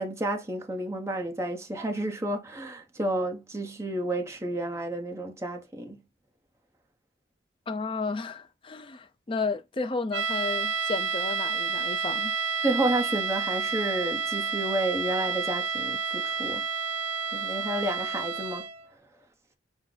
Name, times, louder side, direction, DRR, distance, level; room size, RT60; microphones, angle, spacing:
voice 1, 0.0-6.0 12.6-16.6 17.3-18.7, right 1 dB, 15° right, 0.8 m, -31 dB
voice 2, 7.7-12.3, left 4 dB, 25° left, 0.5 m, -32 dB
sound 1, 10.1-18.8, right 5 dB, 65° right, 0.4 m, -30 dB
6.2 x 2.1 x 3.8 m
head